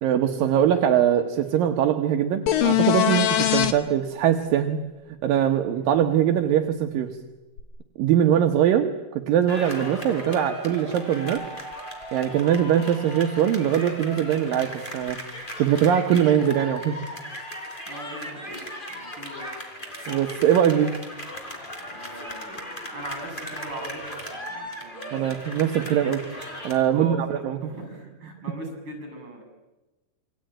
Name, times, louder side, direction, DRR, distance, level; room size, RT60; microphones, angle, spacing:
voice 1, 0.0-4.8 5.2-7.1 8.0-11.4 12.1-15.2 15.6-17.0 20.1-20.9 25.1-26.2 26.6-27.6, right 9 dB, 75° right, 4 dB, 2.9 m, -22 dB
sound 1, 2.5-3.7 7.6-7.7, left 12 dB, 70° left, 3.1 m, -21 dB
sound 2, 9.5-26.8, equal, 15° left, 3.9 m, -37 dB
voice 2, 17.9-19.5 21.8-25.4 26.9-29.4, right 1 dB, 35° right, 5 dB, 8.5 m, -40 dB
27.5 x 24.0 x 9.0 m, 1.1 s
omnidirectional pair, 4.1 m